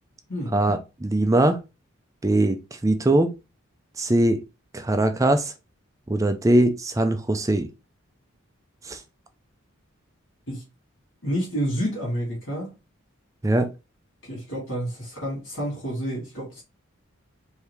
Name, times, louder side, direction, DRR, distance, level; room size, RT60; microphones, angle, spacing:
voice 1, 0.5-1.6 2.2-3.3 4.0-4.4 4.7-5.5 6.1-7.7 8.9-9.0 13.4-13.7, right 1 dB, 15° right, 0.4 m, -21 dB
voice 2, 11.2-12.7 14.2-16.6, equal, 65° left, 2.8 m, -29 dB
4.6 x 2.8 x 3.4 m
head